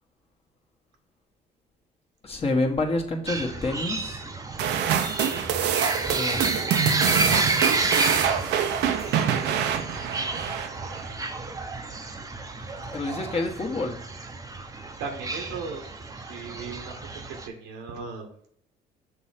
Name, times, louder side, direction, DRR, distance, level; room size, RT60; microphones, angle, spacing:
voice 1, 2.2-4.3 6.1-6.5 6.8-7.3 12.8-14.0, left 2 dB, 30° left, 1 dB, 1.4 m, -28 dB
sound 1, 3.3-17.5, right 3 dB, 20° right, 0.8 m, -30 dB
sound 2, 4.6-11.1, right 9 dB, 70° right, 0.7 m, -25 dB
voice 2, 12.2-13.0 15.0-18.5, right 5 dB, 85° right, 4 dB, 1.4 m, -39 dB
6.0 x 3.2 x 5.7 m, 0.65 s
supercardioid pair, 80°, 18 cm